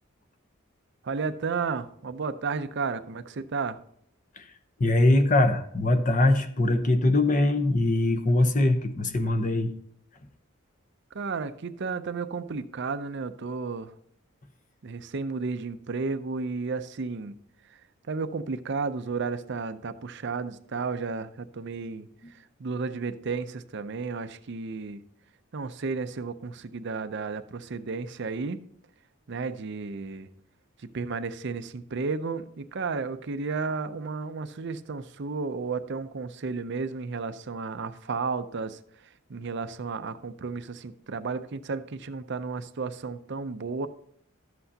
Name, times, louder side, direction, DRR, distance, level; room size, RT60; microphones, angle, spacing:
voice 1, 1.0-3.8 11.1-13.9 14.8-17.4 17.6-17.8 18.1-25.0 25.5-28.6 29.3-30.3 30.8-43.9, right 4 dB, 55° right, 11 dB, 0.5 m, -33 dB
voice 2, 4.8-9.7, left 2 dB, 40° left, 8 dB, 0.8 m, -22 dB
12.5 x 7.9 x 2.8 m, 0.67 s
head